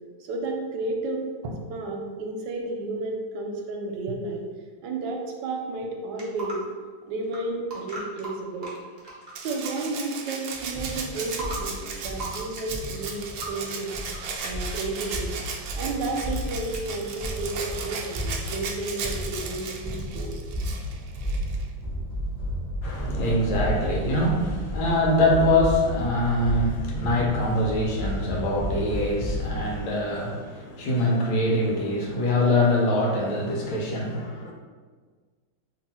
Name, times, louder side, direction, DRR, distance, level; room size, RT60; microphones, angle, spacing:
voice 1, 0.3-4.4 4.8-6.6 7.1-8.7 9.4-13.9 14.4-15.3 15.8-20.3, right 2 dB, 70° right, 1 dB, 1.1 m, -32 dB
sound 1, 6.2-6.6 7.2-7.4 7.7-9.8 10.1-10.8 11.2-11.6 11.9-14.7 15.9-16.2 16.7-16.8, right 2 dB, 55° right, 0.4 m, -39 dB
Rattle (instrument), 9.3-21.7 23.1-23.2, right 5 dB, 90° right, 0.8 m, -36 dB
sound 2, 10.5-29.7, equal, 20° left, 1.2 m, -32 dB
voice 2, 22.8-34.5, left 1 dB, 80° left, -1 dB, 1.5 m, -24 dB
3.0 x 2.9 x 4.1 m, 1.5 s
omnidirectional pair, 2.2 m